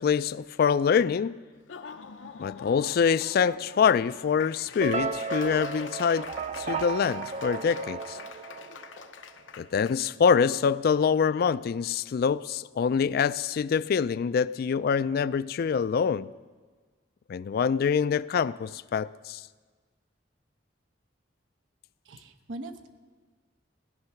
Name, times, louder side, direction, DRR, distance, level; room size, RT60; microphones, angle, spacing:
voice 1, 0.0-1.4 2.4-6.3 6.6-8.2 9.6-16.3 17.3-19.4, left 6 dB, 55° left, 0.3 m, -25 dB
Laughter / Applause, 1.6-10.0, left 6 dB, 90° left, 0.7 m, -44 dB
sound 1, 4.8-9.1, right 4 dB, 40° right, 0.4 m, -34 dB
voice 2, 22.1-22.9, right 1 dB, 85° right, 0.9 m, -41 dB
16.0 x 10.5 x 5.8 m
head